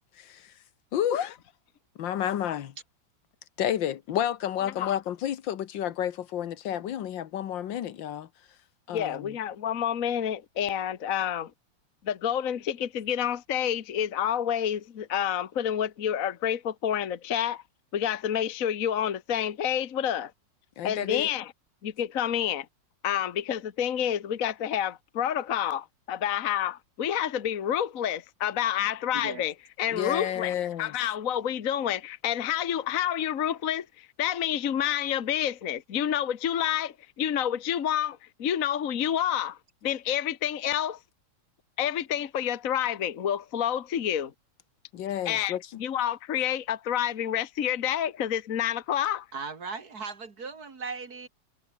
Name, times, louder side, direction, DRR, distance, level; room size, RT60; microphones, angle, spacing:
voice 1, 0.2-0.5 0.9-1.3 2.0-2.7 3.6-8.3 8.9-9.4 20.8-21.3 29.9-31.0 44.9-45.6, left 10 dB, 85° left, 1.8 m, -30 dB
voice 2, 8.9-11.5 12.0-17.6 17.9-20.3 20.8-21.5 21.8-22.7 23.0-41.0 41.8-44.3 45.2-49.3, left 10 dB, 50° left, 1.5 m, -29 dB
voice 3, 29.1-29.4 49.3-51.3, right 4 dB, 55° right, 3.1 m, -37 dB
omnidirectional pair, 2.0 m